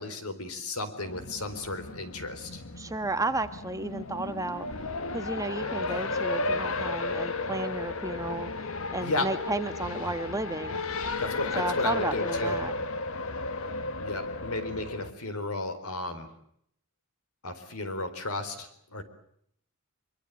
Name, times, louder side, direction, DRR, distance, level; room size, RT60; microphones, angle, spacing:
voice 1, 0.0-2.6 9.0-9.3 11.2-12.5 14.0-16.3 17.4-19.0, left 2 dB, 80° left, 10 dB, 4.3 m, -34 dB
Race car auto racing, 1.0-15.1, left 3 dB, 65° left, 1.4 m, -34 dB
voice 2, 2.8-4.7 5.1-10.8 11.5-12.7, right 2 dB, 15° right, 9 dB, 1.3 m, -33 dB
24.0 x 24.0 x 8.3 m, 0.70 s
head